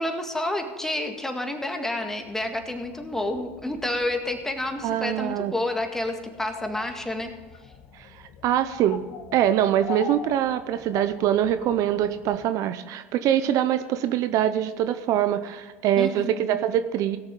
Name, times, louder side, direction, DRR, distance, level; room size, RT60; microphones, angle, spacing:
voice 1, 0.0-7.3 16.0-16.6, left 1 dB, 5° left, 4 dB, 1.8 m, -29 dB
sound 1, 2.0-12.5, left 6 dB, 50° left, 1.3 m, -43 dB
voice 2, 4.8-5.5 7.9-8.1 8.4-9.0 9.3-17.2, right 11 dB, 55° right, 11 dB, 0.6 m, -24 dB
17.0 x 7.0 x 5.3 m, 1.3 s
hypercardioid pair, 80°, 7 cm